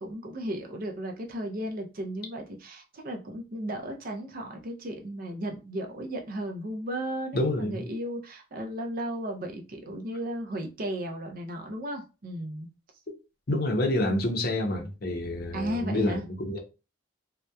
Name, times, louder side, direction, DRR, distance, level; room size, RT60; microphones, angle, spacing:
voice 1, 0.0-12.7 15.5-16.2, right 1 dB, 50° right, 0.5 m, -35 dB
voice 2, 7.3-7.8 13.5-16.6, left 1 dB, 55° left, 0.6 m, -28 dB
2.7 x 2.1 x 2.2 m
head